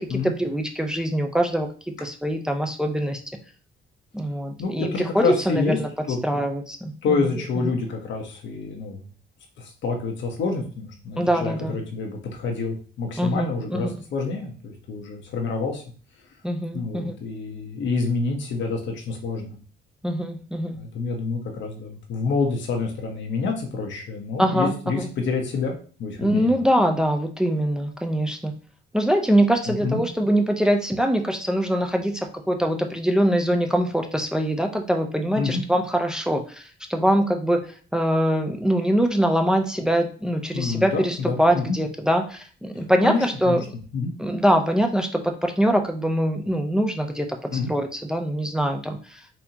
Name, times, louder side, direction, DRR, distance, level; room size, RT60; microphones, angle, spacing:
voice 1, 0.0-3.2 4.1-5.9 6.2-7.3 7.6-7.8 11.2-11.8 13.2-14.0 16.4-17.2 20.0-20.8 24.4-25.1 26.2-28.5 28.9-36.6 36.9-37.7 37.9-43.6 44.2-49.3, equal, 5° right, 4 dB, 0.6 m, -23 dB
voice 2, 4.6-5.8 6.1-6.2 7.0-9.1 9.6-15.8 16.7-19.5 20.7-26.6 29.7-30.0 35.4-35.6 40.5-41.8 42.8-43.6 43.9-44.1 47.5-47.7, left 4 dB, 70° left, 2 dB, 0.9 m, -28 dB
4.2 x 2.8 x 2.8 m, 0.40 s
cardioid pair, 90°, 20 cm